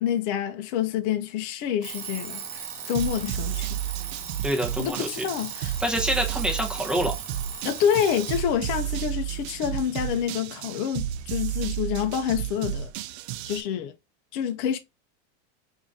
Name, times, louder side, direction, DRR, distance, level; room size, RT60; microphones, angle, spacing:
voice 1, 0.0-3.8 4.8-5.7 7.6-12.9 13.5-13.9 14.3-14.8, left 9 dB, 45° left, 0.6 m, -27 dB
Alarm, 1.8-8.5, right 7 dB, 55° right, 1.2 m, -38 dB
sound 1, 2.9-13.6, right 12 dB, 75° right, 0.5 m, -32 dB
voice 2, 4.4-5.1 5.8-7.1, equal, 5° right, 0.8 m, -26 dB
3.7 x 2.7 x 3.5 m
supercardioid pair, 160°, 33 cm